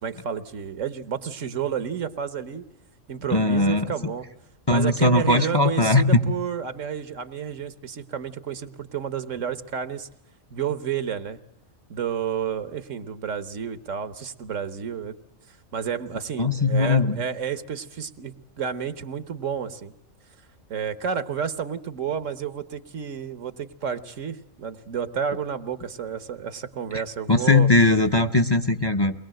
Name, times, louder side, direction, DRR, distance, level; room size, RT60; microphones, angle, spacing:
voice 1, 0.0-2.6 3.1-4.3 4.7-10.1 10.5-11.4 11.9-15.1 15.5-19.9 20.7-27.7, right 7 dB, 75° right, 13 dB, 1.5 m, -31 dB
voice 2, 3.3-3.9 4.7-6.2 16.4-17.2 26.9-27.0 27.3-29.1, left 2 dB, 25° left, 10 dB, 0.8 m, -19 dB
22.5 x 20.5 x 7.7 m, 0.86 s
omnidirectional pair, 1.3 m